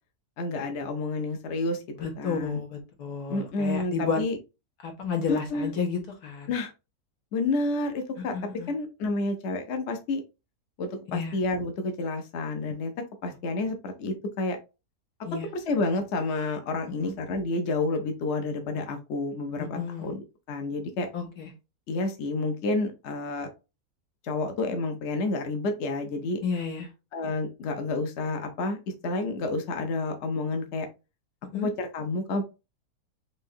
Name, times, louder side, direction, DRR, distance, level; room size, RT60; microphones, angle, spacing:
voice 1, 0.4-1.8 2.2-2.6 3.3-4.4 5.3-5.7 6.5-6.7 7.3-8.3 8.7-10.2 10.8-12.9 13.2-14.6 15.3-21.1 21.9-23.5 24.2-26.4 27.1-28.8 29.0-30.9 31.5-32.4, left 2 dB, 55° left, 5 dB, 1.0 m, -29 dB
voice 2, 2.0-4.2 4.8-6.6 8.3-8.7 11.1-11.4 15.3-15.5 17.0-17.1 19.8-20.1 21.1-21.5 26.4-26.9 31.5-31.7, left 5 dB, 80° left, 2 dB, 1.8 m, -31 dB
5.4 x 3.3 x 2.6 m, 0.28 s
omnidirectional pair, 1.6 m